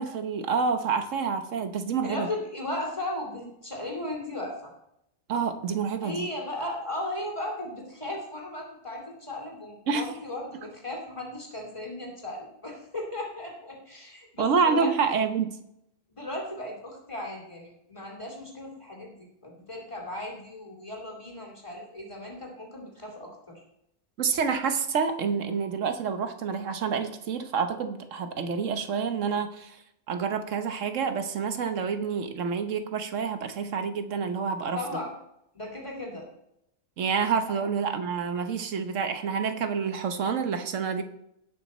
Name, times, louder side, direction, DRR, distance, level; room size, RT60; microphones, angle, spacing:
voice 1, 0.0-2.3 5.3-6.3 9.9-10.1 14.4-15.6 24.2-29.8 30.1-34.8 37.0-41.0, right 6 dB, 80° right, 8 dB, 1.3 m, -28 dB
voice 2, 2.0-4.7 6.0-14.9 16.1-23.6 34.7-35.1 35.5-36.3, left 1 dB, 25° left, -1 dB, 2.7 m, -36 dB
18.0 x 6.2 x 4.2 m, 0.80 s
omnidirectional pair, 1.3 m